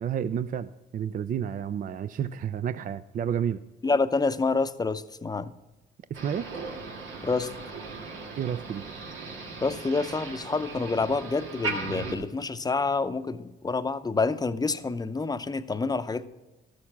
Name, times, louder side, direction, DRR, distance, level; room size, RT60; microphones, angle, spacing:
voice 1, 0.0-3.6 6.1-6.5 8.4-8.8, right 8 dB, 45° right, 13 dB, 0.4 m, -30 dB
voice 2, 3.8-5.5 7.2-7.5 9.6-16.2, left 4 dB, 20° left, 11 dB, 0.6 m, -27 dB
Motor vehicle (road), 6.1-12.2, right 3 dB, 85° right, 1.8 m, -37 dB
13.0 x 6.5 x 5.7 m, 1.1 s
cardioid pair, 90°, 20 cm